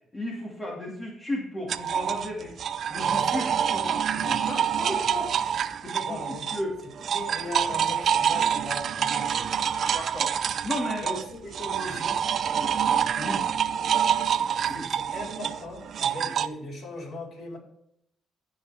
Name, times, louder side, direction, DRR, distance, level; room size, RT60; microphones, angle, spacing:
voice 1, 0.1-2.5 2.9-5.3 5.8-6.8 7.6-7.9 9.9-10.3 10.6-11.2 12.5-12.7 13.2-13.5 14.7-14.9 16.3-16.4, left 1 dB, 20° left, -3 dB, 2.4 m, -34 dB
sound 1, 1.7-6.7 7.0-16.5, right 8 dB, 60° right, 0.5 m, -27 dB
voice 2, 3.0-3.6 6.0-6.5 7.1-9.7 11.0-12.2 14.7-17.6, left 2 dB, 60° left, 0 dB, 4.4 m, -39 dB
16.0 x 5.7 x 3.5 m, 0.72 s
cardioid pair, 90°, 0 cm